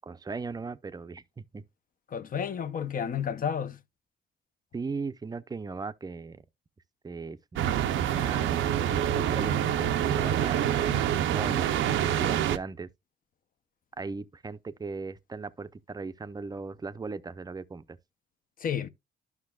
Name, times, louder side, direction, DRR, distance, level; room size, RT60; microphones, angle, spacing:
voice 1, 0.0-1.6 4.7-6.4 7.0-8.6 8.9-12.9 14.0-18.0, right 4 dB, 20° right, 0.5 m, -38 dB
voice 2, 2.1-3.8 18.6-18.9, left 8 dB, 45° left, 0.6 m, -31 dB
sound 1, 7.6-12.6, right 10 dB, 80° right, 0.6 m, -26 dB
12.0 x 5.8 x 2.3 m
cardioid pair, 90°, 20 cm